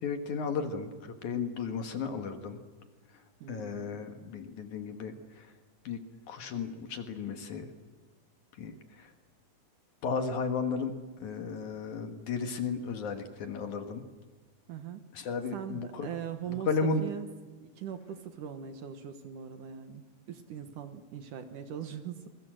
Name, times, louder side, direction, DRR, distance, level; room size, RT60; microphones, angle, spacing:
voice 1, 0.0-2.6 3.5-5.5 5.8-6.0 6.3-7.7 8.6-9.1 10.0-10.9 11.2-14.0 15.1-16.1 16.5-17.0, left 5 dB, 60° left, 7 dB, 2.6 m, -34 dB
voice 2, 3.4-4.0 14.7-15.1 15.5-17.3 17.6-22.3, right 8 dB, 65° right, 8 dB, 2.5 m, -41 dB
27.5 x 22.0 x 7.7 m, 1.3 s
omnidirectional pair, 4.4 m